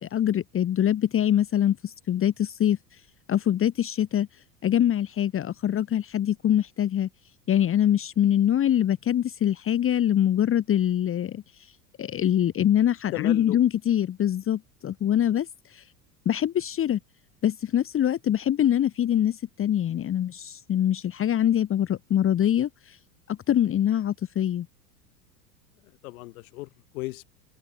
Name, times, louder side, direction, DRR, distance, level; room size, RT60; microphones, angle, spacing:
voice 1, 0.0-2.8 3.3-4.3 4.6-7.1 7.5-11.4 12.0-15.8 16.2-17.0 17.4-23.0 23.3-24.7, left 10 dB, 25° left, 1.5 m, -24 dB
voice 2, 13.1-13.6 25.8-27.3, left 20 dB, 60° left, 4.0 m, -35 dB
figure-of-eight pair, 80°, 48 cm